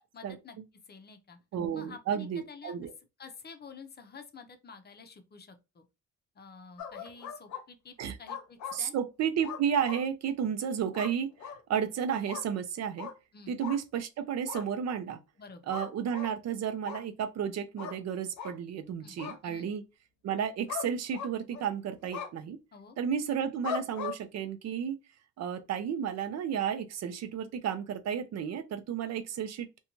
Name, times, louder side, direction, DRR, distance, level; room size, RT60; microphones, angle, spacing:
voice 1, 0.1-0.6 0.9-1.4 1.7-2.7 3.2-5.8 6.4-8.9 13.3-13.6 15.4-15.7 19.0-19.7 22.7-23.0, left 4 dB, 35° left, 0.6 m, -49 dB
voice 2, 1.5-2.9 8.0-8.2 8.7-11.3 11.7-13.1 13.5-15.2 15.7-19.8 20.2-22.6 23.0-25.0 25.4-29.7, right 8 dB, 60° right, 0.5 m, -32 dB
sound 1, 6.8-7.6 8.3-8.8 9.4-10.0 10.9-11.1 11.4-11.6 12.3-12.4 13.0-13.1 13.6-13.8 14.5-14.6 15.7-16.3 16.8-17.0 17.8-18.0 18.4-18.5 19.2-19.4 20.7-20.9 21.1-21.7 22.1-22.3 23.6-24.2, left 7 dB, 70° left, 0.7 m, -38 dB
2.5 x 2.3 x 2.9 m
cardioid pair, 90°, 30 cm